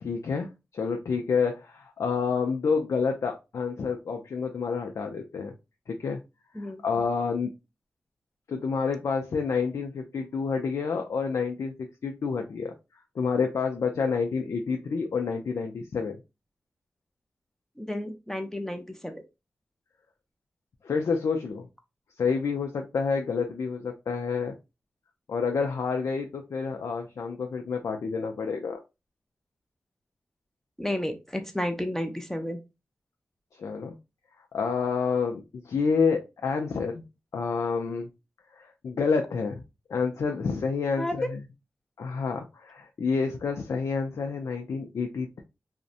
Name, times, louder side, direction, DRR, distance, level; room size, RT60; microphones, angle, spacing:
voice 1, 0.0-5.5 5.9-6.2 6.8-7.5 8.5-12.7 13.2-16.2 20.8-21.7 22.2-24.5 25.3-28.8 33.6-33.9 34.5-37.0 37.3-38.1 38.6-39.6 39.9-41.4 42.0-45.4, left 5 dB, 80° left, 3 dB, 0.4 m, -28 dB
voice 2, 17.8-19.2 30.8-32.6 41.0-41.3, left 1 dB, 10° left, 6 dB, 0.5 m, -32 dB
2.6 x 2.1 x 2.5 m, 0.25 s
cardioid pair, 55°, 5 cm